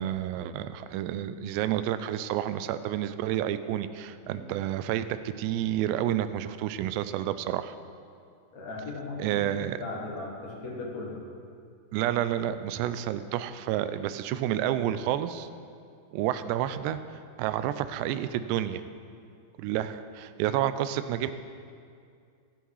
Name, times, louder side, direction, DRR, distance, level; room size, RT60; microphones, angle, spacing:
voice 1, 0.0-7.8 9.2-9.8 11.9-15.5 16.1-17.0 17.4-18.8 19.6-21.3, right 11 dB, 85° right, 12 dB, 2.7 m, -30 dB
voice 2, 8.5-11.1, left 3 dB, 50° left, -3 dB, 1.0 m, -38 dB
16.5 x 9.0 x 4.7 m, 2.3 s
omnidirectional pair, 4.8 m